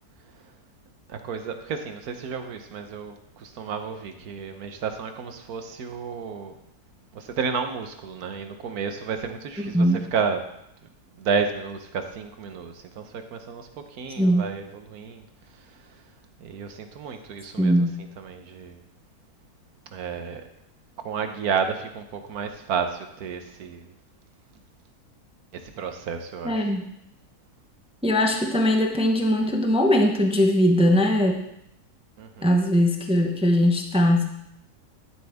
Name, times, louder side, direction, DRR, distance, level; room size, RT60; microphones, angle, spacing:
voice 1, 1.1-6.5 7.1-10.4 11.2-15.2 16.4-17.7 18.2-18.8 19.9-20.4 21.0-23.8 25.8-26.8 32.2-32.5, right 6 dB, 75° right, 7 dB, 1.4 m, -31 dB
voice 2, 17.6-18.0 26.4-26.8 28.0-31.4 32.4-34.2, equal, 5° right, 2 dB, 0.6 m, -20 dB
12.5 x 7.8 x 3.5 m, 0.79 s
omnidirectional pair, 1.6 m